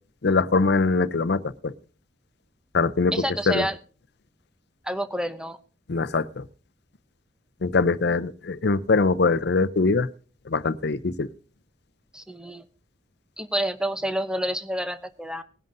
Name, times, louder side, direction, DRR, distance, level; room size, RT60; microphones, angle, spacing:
voice 1, 0.2-1.7 2.7-3.7 5.9-6.5 7.6-10.1 10.5-11.3, left 3 dB, 60° left, 15 dB, 0.6 m, -23 dB
voice 2, 3.1-3.8 4.8-5.6 12.1-12.6 13.4-15.4, right 1 dB, 5° right, 10 dB, 0.7 m, -28 dB
20.0 x 10.5 x 2.6 m, 0.36 s
head